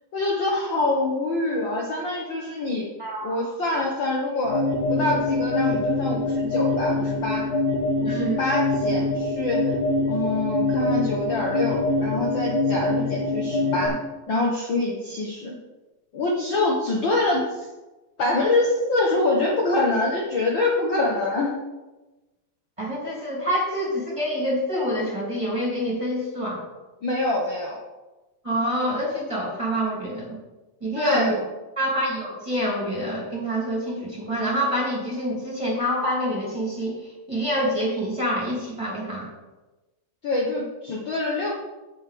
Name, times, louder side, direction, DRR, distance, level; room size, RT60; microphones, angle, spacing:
voice 1, 0.1-2.9 3.2-4.6 4.9-7.5 8.0-9.7 10.0-14.0 14.3-15.6 16.1-17.7 18.2-21.6 27.0-27.8 30.9-31.4 40.2-41.5, left 2 dB, 65° left, -2 dB, 1.2 m, -25 dB
voice 2, 3.0-3.5 8.0-8.4 22.8-26.6 28.4-30.4 30.8-31.3 31.8-37.0 37.3-39.3, equal, 10° right, -5 dB, 2.5 m, -26 dB
sound 1, 4.4-13.9, left 2 dB, 80° left, 3.2 m, -24 dB
8.3 x 5.5 x 7.7 m, 1.1 s
omnidirectional pair, 4.1 m